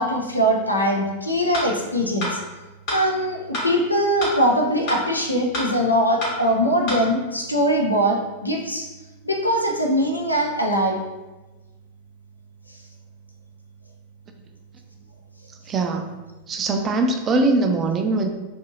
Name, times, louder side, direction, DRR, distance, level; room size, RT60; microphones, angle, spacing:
voice 1, 0.0-2.4 2.9-8.9 9.2-11.0, equal, 85° left, 0 dB, 0.4 m, -21 dB
sound 1, 1.5-1.7 2.2-2.3 2.9-3.0 3.5-3.7 4.2-4.3 4.9-5.0 5.5-5.7 6.2-6.3 6.9-7.0, left 1 dB, 45° left, 1.0 m, -26 dB
voice 2, 15.7-16.1 16.5-18.3, right 3 dB, 25° right, 4 dB, 0.3 m, -21 dB
2.7 x 2.5 x 2.7 m, 1.1 s
figure-of-eight pair, 90°, 0 cm